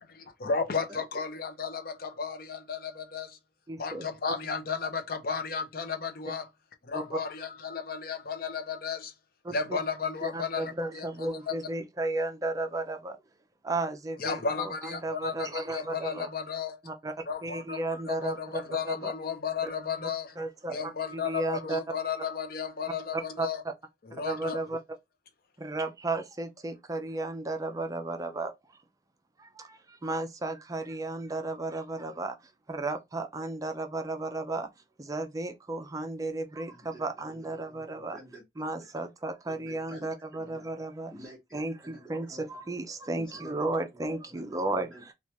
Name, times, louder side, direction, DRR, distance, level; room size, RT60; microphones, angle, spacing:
voice 1, 0.4-3.4 3.8-6.4 6.9-9.1 9.5-11.1 11.5-11.6 14.2-16.8 17.3-17.8 18.1-20.3 20.7-23.6 24.1-24.6, left 6 dB, 55° left, 0.6 m, -33 dB
voice 2, 3.7-4.1 6.9-7.2 9.4-9.8 10.2-13.2 13.6-16.3 16.8-17.1 17.4-19.1 19.6-19.7 20.4-21.8 23.1-23.7 24.2-24.8 25.6-28.5 29.4-32.4 32.7-34.7 35.0-38.2 38.6-41.1 41.5-44.9, right 2 dB, 20° right, 0.4 m, -34 dB
voice 3, 36.7-38.9 39.5-40.7 41.1-42.5 43.2-43.7 43.9-45.1, equal, 5° left, 1.0 m, -51 dB
3.2 x 2.3 x 2.7 m
head